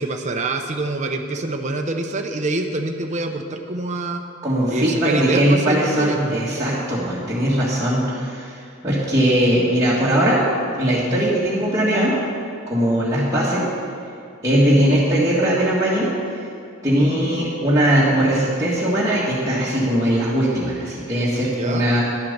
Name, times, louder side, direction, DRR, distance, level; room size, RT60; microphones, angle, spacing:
voice 1, 0.0-4.2 4.7-6.4 11.1-11.3 21.5-21.9, right 2 dB, 35° right, 4 dB, 0.7 m, -26 dB
voice 2, 4.4-10.4 10.8-12.2 12.7-13.7 14.4-16.1 16.8-22.0, equal, 15° right, -9 dB, 1.6 m, -19 dB
11.0 x 7.4 x 6.6 m, 2.4 s
head